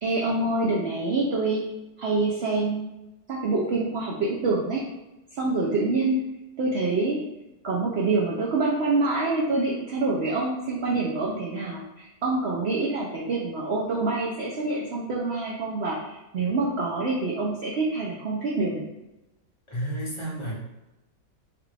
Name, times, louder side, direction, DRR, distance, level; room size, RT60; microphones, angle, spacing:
voice 1, 0.0-1.6 2.0-2.9 3.3-4.9 5.3-6.2 6.6-7.3 7.6-18.8, right 3 dB, 80° right, -3 dB, 0.5 m, -26 dB
voice 2, 19.7-20.6, right 1 dB, 40° left, -6 dB, 0.4 m, -31 dB
3.4 x 2.4 x 3.2 m, 0.97 s
omnidirectional pair, 1.7 m